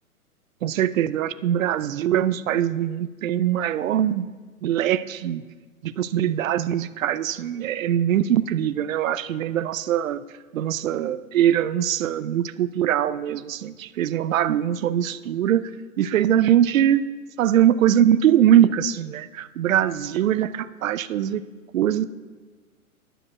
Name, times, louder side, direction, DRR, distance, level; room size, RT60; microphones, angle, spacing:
voice 1, 0.6-4.3 4.6-5.4 5.8-10.2 10.5-15.6 16.0-17.1 17.4-21.4 21.7-22.0, right 10 dB, 65° right, 14 dB, 0.6 m, -22 dB
10.0 x 6.7 x 6.2 m, 1.4 s
figure-of-eight pair, 120°, 44 cm